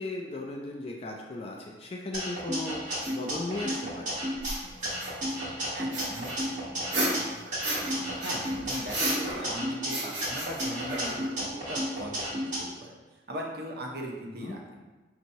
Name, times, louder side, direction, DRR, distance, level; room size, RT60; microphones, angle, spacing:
voice 1, 0.0-4.2 14.4-14.6, left 2 dB, 30° left, 0 dB, 0.3 m, -36 dB
sound 1, 2.1-4.5 4.8-7.2 7.5-9.9 10.2-12.6, equal, 40° right, 1.2 m, -32 dB
sound 2, 3.0-3.1 4.3-5.3 5.9-7.9 8.2-9.5 9.9-11.4, right 1 dB, 85° right, 1.3 m, -33 dB
sound 3, 4.5-10.2, left 1 dB, 60° left, 0.7 m, -50 dB
voice 2, 5.7-6.3 8.2-14.8, equal, 55° right, -1 dB, 0.7 m, -39 dB
5.3 x 2.9 x 2.6 m, 1.2 s
head